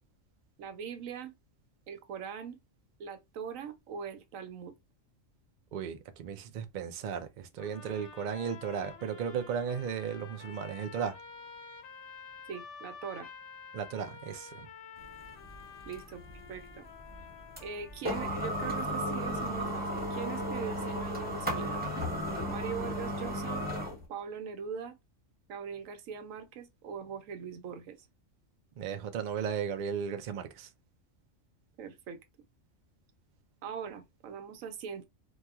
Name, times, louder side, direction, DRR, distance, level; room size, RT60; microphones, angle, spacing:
voice 1, 0.6-1.3 1.9-2.6 3.0-4.7 12.5-13.3 15.9-16.8 17.6-21.8 22.5-23.6 24.1-25.0 25.5-28.1 31.8-32.2 33.6-35.0, right 7 dB, 85° right, 1.1 m, -41 dB
voice 2, 5.7-11.2 13.7-14.7 28.8-30.7, right 7 dB, 65° right, 0.4 m, -35 dB
sound 1, 7.6-18.6, left 6 dB, 65° left, 1.2 m, -50 dB
sound 2, 15.0-24.0, equal, 10° right, 1.1 m, -35 dB
2.8 x 2.3 x 2.3 m
omnidirectional pair, 1.3 m